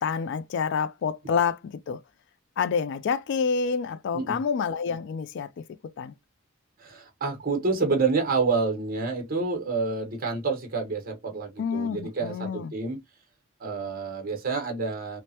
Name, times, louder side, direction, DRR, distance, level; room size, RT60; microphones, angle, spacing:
voice 1, 0.0-2.0 2.6-5.5 6.0-6.1 11.6-12.7, left 6 dB, 60° left, 0.3 m, -28 dB
voice 2, 6.8-13.0 13.6-15.2, right 4 dB, 45° right, 1.0 m, -28 dB
3.3 x 2.0 x 2.7 m
head